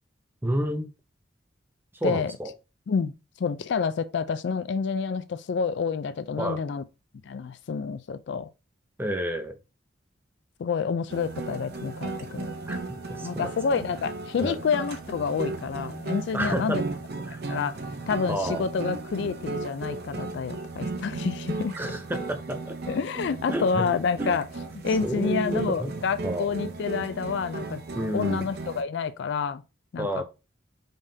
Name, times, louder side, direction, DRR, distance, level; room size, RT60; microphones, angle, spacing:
voice 1, 0.4-0.9 1.9-2.5 6.4-6.6 9.0-9.6 12.6-13.5 14.3-14.6 16.3-16.8 17.3-17.4 18.3-18.6 21.8-22.8 23.5-23.8 24.2-24.3 25.0-25.9 26.2-26.5 27.9-28.4 30.0-30.2, right 1 dB, 10° right, 0.6 m, -30 dB
voice 2, 2.9-6.8 7.2-8.5 10.6-12.5 13.2-16.8 17.5-17.8 18.1-21.7 22.9-24.5 24.8-27.8 28.1-29.6 29.9-30.2, left 5 dB, 60° left, 0.3 m, -28 dB
sound 1, 11.1-28.8, right 3 dB, 55° right, 0.6 m, -35 dB
5.3 x 3.6 x 2.7 m
head